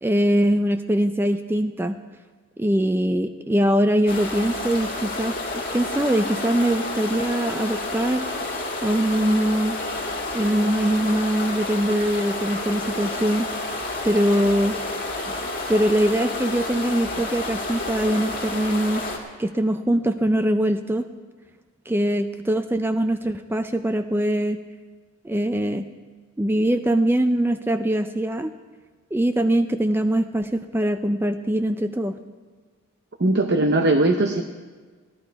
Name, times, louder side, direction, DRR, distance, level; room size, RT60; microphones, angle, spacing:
voice 1, 0.0-2.0 2.6-8.3 8.8-9.8 10.3-13.5 14.0-14.8 15.7-19.0 19.4-21.1 21.9-24.6 25.2-25.9 26.4-28.5 29.1-32.2, right 1 dB, 10° right, 9 dB, 0.3 m, -22 dB
sound 1, 4.1-19.2, left 2 dB, 40° left, 1.9 m, -30 dB
voice 2, 33.2-34.4, right 2 dB, 50° right, 4 dB, 0.7 m, -19 dB
16.0 x 11.5 x 4.6 m, 1.4 s
head